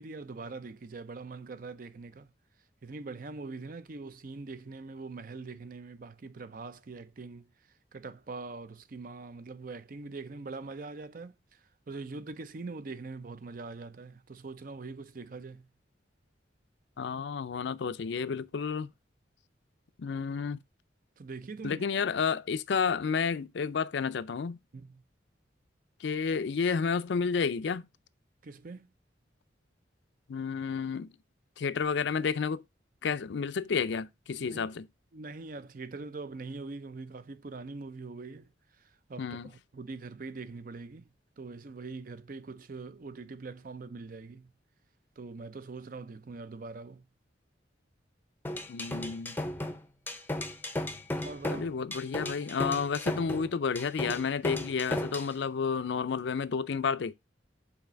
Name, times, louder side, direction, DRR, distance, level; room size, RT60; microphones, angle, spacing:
voice 1, 0.0-2.3 2.8-7.5 7.9-15.7 21.2-21.8 24.7-25.0 28.4-28.9 34.4-34.7 35.1-38.5 38.8-41.1 41.4-44.5 45.2-47.0 51.2-51.7, right 3 dB, 45° right, 0.5 m, -43 dB
voice 2, 17.0-18.9 20.0-20.6 21.6-24.6 26.0-27.8 30.3-31.1 31.6-32.6 33.0-34.9 39.2-39.5 48.7-49.4 51.4-57.1, left 5 dB, 70° left, 0.4 m, -31 dB
sound 1, 48.4-55.3, left 1 dB, 10° left, 0.6 m, -35 dB
5.7 x 4.1 x 5.0 m
head